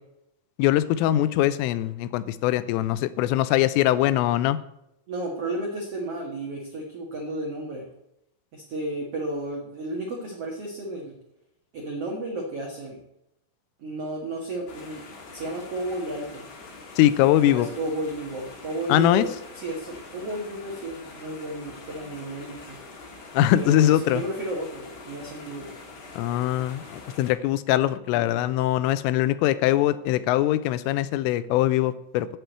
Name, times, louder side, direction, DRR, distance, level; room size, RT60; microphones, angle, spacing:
voice 1, 0.6-4.6 17.0-17.7 18.9-19.3 23.3-24.2 26.2-32.3, left 13 dB, 85° left, 14 dB, 3.2 m, -22 dB
voice 2, 5.1-7.8 8.5-11.1 11.7-13.0 13.8-15.0 15.3-16.5 17.2-22.8 23.6-25.7, right 1 dB, 60° right, -1 dB, 1.6 m, -33 dB
sound 1, 14.7-27.3, left 3 dB, 50° left, 4.3 m, -44 dB
8.4 x 7.8 x 8.0 m, 0.82 s
omnidirectional pair, 5.7 m